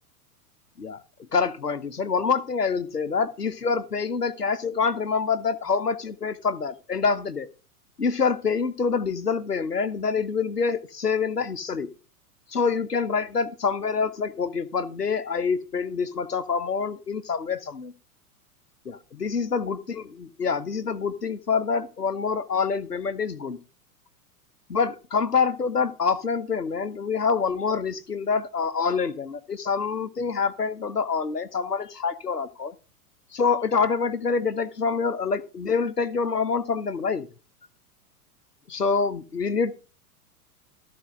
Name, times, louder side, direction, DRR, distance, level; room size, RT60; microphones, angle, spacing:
voice 1, 1.3-7.5 8.0-11.9 12.5-17.9 18.9-23.6 24.7-32.7 33.3-37.3 38.7-39.7, left 5 dB, 90° left, 14 dB, 0.9 m, -26 dB
14.0 x 4.8 x 6.2 m, 0.33 s
figure-of-eight pair, 95°, 46 cm